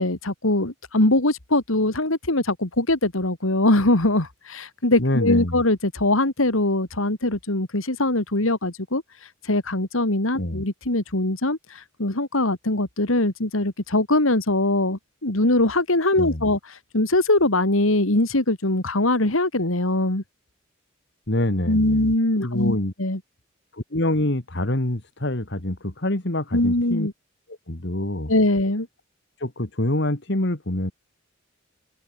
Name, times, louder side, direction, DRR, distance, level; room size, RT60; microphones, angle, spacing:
voice 1, 0.0-9.0 9.4-16.6 16.9-20.2 21.7-23.2 26.5-27.1 28.3-28.9, left 1 dB, 75° left, 3.0 m, -22 dB
voice 2, 5.0-5.6 10.4-10.6 16.2-16.5 21.3-22.1 22.4-22.9 23.7-27.1 27.7-28.3 29.4-30.9, left 1 dB, 55° left, 2.2 m, -26 dB
head